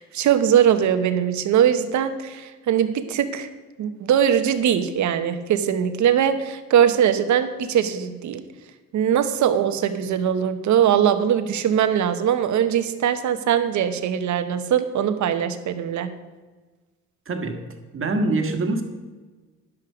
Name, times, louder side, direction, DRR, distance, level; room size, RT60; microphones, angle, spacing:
voice 1, 0.0-3.5 3.8-8.4 8.9-16.1, right 9 dB, 70° right, 10 dB, 1.0 m, -21 dB
voice 2, 17.3-17.6 17.9-18.8, right 2 dB, 45° right, 5 dB, 1.6 m, -24 dB
10.5 x 7.9 x 4.9 m, 1.3 s
cardioid pair, 90°, 30 cm